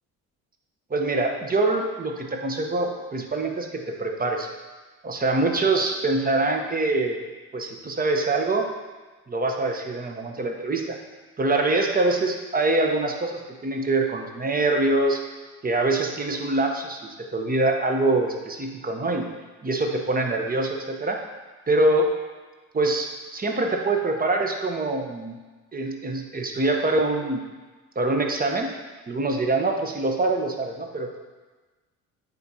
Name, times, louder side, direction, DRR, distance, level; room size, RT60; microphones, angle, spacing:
voice 1, 0.9-4.5 5.0-7.2 7.5-8.7 9.3-11.0 11.4-15.2 15.6-17.0 17.3-19.3 19.6-21.2 21.7-22.1 22.7-25.4 25.7-27.4 28.0-28.7 29.1-31.2, right 2 dB, 20° right, 3 dB, 0.9 m, -24 dB
8.1 x 5.0 x 2.8 m, 1.3 s
figure-of-eight pair, 50°, 44 cm